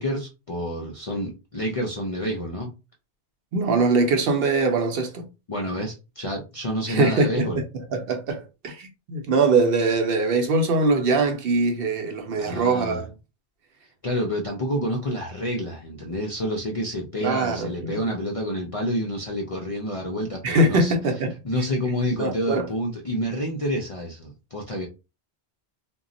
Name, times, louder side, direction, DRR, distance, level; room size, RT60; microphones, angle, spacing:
voice 1, 0.0-2.7 5.5-7.6 12.4-13.0 14.0-20.9 21.4-24.9, equal, 50° left, 0.4 m, -28 dB
voice 2, 3.5-5.2 6.9-7.7 7.9-13.1 17.2-18.0 20.4-21.3 22.2-22.7, right 3 dB, 65° right, 0.7 m, -22 dB
2.2 x 2.0 x 3.7 m
omnidirectional pair, 1.1 m